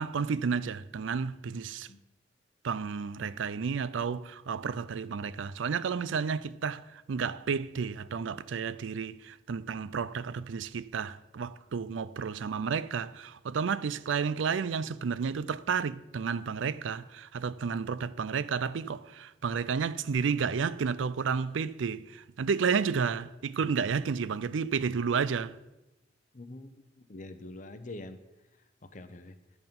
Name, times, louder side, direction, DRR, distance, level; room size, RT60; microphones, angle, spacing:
voice 1, 0.0-1.9 2.6-25.6, right 6 dB, 90° right, 0.4 m, -31 dB
voice 2, 26.3-26.7 27.1-28.2 28.9-29.3, left 2 dB, 40° left, 0.7 m, -44 dB
11.0 x 8.0 x 5.3 m
head